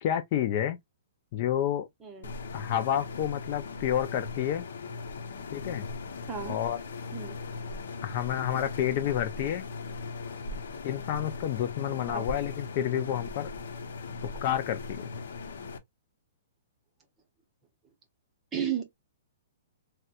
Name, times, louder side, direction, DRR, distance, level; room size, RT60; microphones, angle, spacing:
voice 1, 0.0-0.8 1.3-1.9 2.5-4.7 5.5-5.9 6.4-6.8 8.0-9.6 10.8-13.5 14.4-15.1, left 10 dB, 30° left, 0.3 m, -29 dB
voice 2, 2.0-2.3 6.3-6.6 7.1-7.4 12.1-12.2 18.5-18.8, right 8 dB, 10° right, 0.7 m, -33 dB
sound 1, 2.2-15.8, left 4 dB, 70° left, 0.8 m, -39 dB
4.2 x 2.1 x 2.4 m
hypercardioid pair, 175°, 0 cm